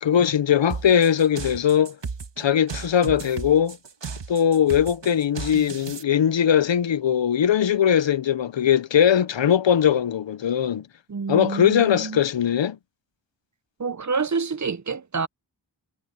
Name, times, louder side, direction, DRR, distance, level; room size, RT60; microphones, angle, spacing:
voice 1, 0.0-2.0 2.4-3.8 4.3-10.9 11.3-12.8, left 9 dB, 90° left, 0.6 m, -20 dB
sound 1, 0.7-6.0, right 5 dB, 75° right, 1.4 m, -35 dB
voice 2, 11.1-12.2 13.8-15.3, right 5 dB, 40° right, 0.6 m, -27 dB
wide cardioid pair, 60°, 43 cm